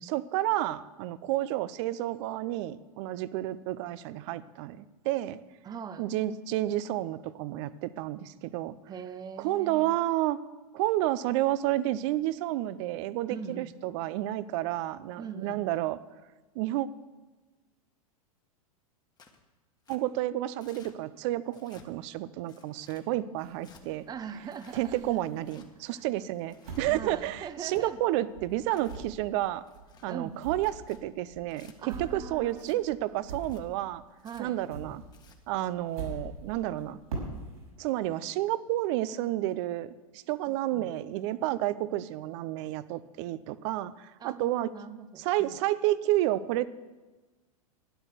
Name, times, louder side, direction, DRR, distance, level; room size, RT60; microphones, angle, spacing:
voice 1, 0.0-5.4 6.0-8.7 9.4-10.4 10.7-16.0 16.5-16.9 19.9-24.0 24.7-29.6 30.0-34.0 34.4-35.0 35.5-37.0 37.8-44.7 45.2-46.6, right 15 dB, 55° right, 16 dB, 0.7 m, -30 dB
voice 2, 5.6-6.1 8.9-10.0 13.3-13.7 15.2-15.6 24.1-25.0 25.9-26.1 26.9-28.0 30.1-30.4 31.8-32.8 34.2-34.6 40.5-40.9 44.2-45.5, right 7 dB, 20° right, 12 dB, 0.8 m, -41 dB
Tearing, 19.2-19.4 19.8-20.0 20.6-20.9 21.5-21.9 22.5-23.0 23.6-23.8 24.4-24.8 25.4-25.7 26.3-26.9 27.5-27.9 28.5-29.0 29.6-30.1 30.6-31.0 31.5-31.7 32.5-32.8 33.3-33.6 34.2-34.4 35.0-35.4, left 5 dB, 20° left, 1.6 m, -57 dB
sound 1, 23.4-25.5 26.0-28.1 28.3-34.0 34.3-37.7, right 3 dB, 80° right, 5.7 m, -43 dB
12.0 x 9.9 x 6.8 m, 1.2 s
hypercardioid pair, 105°, 18 cm